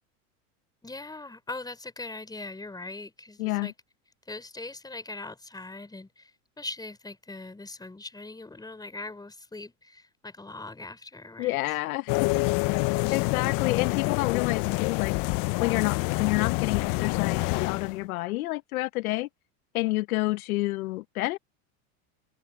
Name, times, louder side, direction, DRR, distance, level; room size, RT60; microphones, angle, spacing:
voice 1, 0.8-3.7 4.3-6.3 6.6-11.6 12.9-13.2, left 3 dB, 10° left, 4.5 m, -41 dB
voice 2, 3.4-3.7 11.4-12.4 13.1-15.1 15.6-19.3 19.7-21.4, left 20 dB, 75° left, 1.3 m, -29 dB
sound 1, 12.1-18.0, left 24 dB, 50° left, 0.9 m, -27 dB
open air
hypercardioid pair, 110°, 44 cm